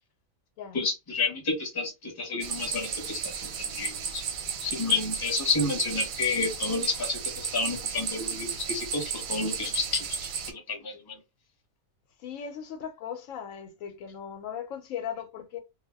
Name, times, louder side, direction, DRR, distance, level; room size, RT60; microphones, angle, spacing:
voice 1, 0.7-4.2 4.6-11.2, left 4 dB, 20° left, 0.7 m, -30 dB
sound 1, 2.4-10.5, right 6 dB, 90° right, 1.0 m, -34 dB
voice 2, 12.2-15.6, left 8 dB, 75° left, 0.9 m, -38 dB
2.3 x 2.1 x 3.3 m
omnidirectional pair, 1.4 m